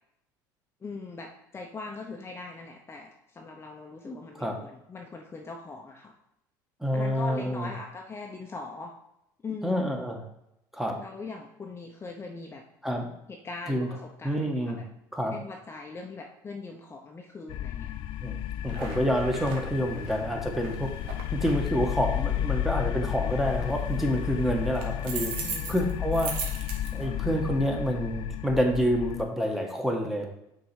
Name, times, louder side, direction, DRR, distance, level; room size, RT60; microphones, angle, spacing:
voice 1, 0.8-6.1 6.9-8.9 9.4-9.9 11.0-12.6 13.3-14.7 15.3-17.9 25.4-25.9, left 3 dB, 25° left, 2 dB, 0.8 m, -41 dB
voice 2, 4.0-4.6 6.8-7.7 9.6-10.2 10.7-11.0 12.8-13.1 13.7-13.9 14.2-14.8 15.1-15.4 18.2-18.4 18.6-20.9 21.3-25.3 25.7-26.3 26.9-30.5, equal, 5° right, 1 dB, 1.3 m, -28 dB
sound 1, 17.5-29.2, left 11 dB, 60° left, 0.4 m, -32 dB
sound 2, 18.7-27.6, right 5 dB, 65° right, 1.3 m, -41 dB
6.0 x 4.0 x 4.8 m, 0.82 s
supercardioid pair, 85°, 10 cm